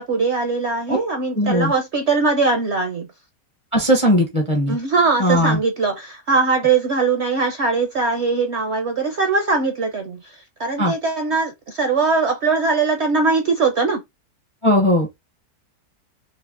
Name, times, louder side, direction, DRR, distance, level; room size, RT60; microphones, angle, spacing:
voice 1, 0.0-3.1 4.7-14.0, right 4 dB, 60° right, 0.7 m, -21 dB
voice 2, 1.3-1.7 3.7-4.8 5.2-5.6 10.8-10.9 14.6-15.1, equal, 30° left, 0.6 m, -18 dB
5.4 x 2.1 x 2.4 m
omnidirectional pair, 1.8 m